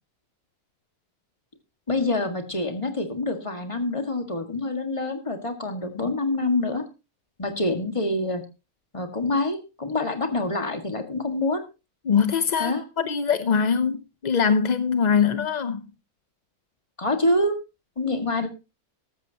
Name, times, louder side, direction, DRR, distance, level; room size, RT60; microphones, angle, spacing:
voice 1, 1.9-6.9 7.4-8.4 8.9-11.6 12.6-12.8 17.0-17.6 18.0-18.5, left 2 dB, 20° left, 1.7 m, -26 dB
voice 2, 12.0-15.9, left 6 dB, 50° left, 0.5 m, -22 dB
14.5 x 13.0 x 2.8 m
omnidirectional pair, 1.5 m